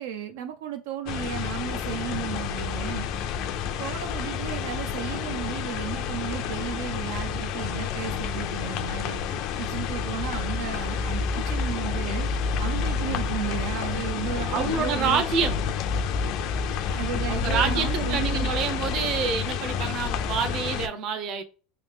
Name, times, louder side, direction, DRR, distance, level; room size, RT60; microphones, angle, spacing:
voice 1, 0.0-3.1 3.8-9.2 9.6-12.3 12.6-15.5 16.7-18.5, right 10 dB, 80° right, 0.4 m, -34 dB
sound 1, 1.1-20.9, left 6 dB, 55° left, 0.4 m, -29 dB
voice 2, 14.5-15.6 17.3-21.4, right 6 dB, 45° right, 0.7 m, -27 dB
3.2 x 2.8 x 3.3 m
supercardioid pair, 135°, 0 cm